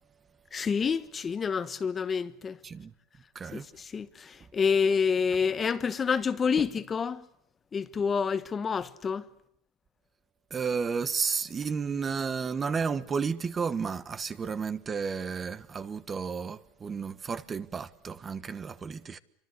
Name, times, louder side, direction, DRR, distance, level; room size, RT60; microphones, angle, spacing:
voice 1, 0.5-2.6 3.5-7.3 7.7-9.3, left 6 dB, 20° left, 1.2 m, -28 dB
voice 2, 10.5-19.2, right 5 dB, 20° right, 1.2 m, -32 dB
28.5 x 25.0 x 8.0 m
supercardioid pair, 140°, 0 cm